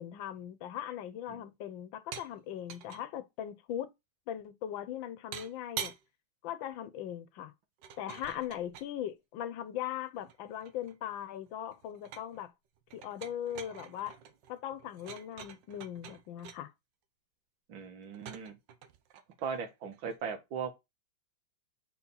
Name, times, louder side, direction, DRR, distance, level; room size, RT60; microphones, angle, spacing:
voice 1, 0.0-3.9 4.3-5.9 6.4-7.5 8.0-12.5 12.9-14.1 14.5-16.7, left 11 dB, 80° left, 1.5 m, -39 dB
sound 1, 2.1-2.3 2.6-3.0 5.3-6.0 7.8-8.9 9.9-11.2 11.5-12.4 12.9-16.6 18.1-20.2, right 9 dB, 75° right, 1.4 m, -46 dB
voice 2, 17.7-18.5 19.4-20.7, right 6 dB, 90° right, 2.0 m, -38 dB
4.5 x 4.3 x 5.4 m
omnidirectional pair, 2.1 m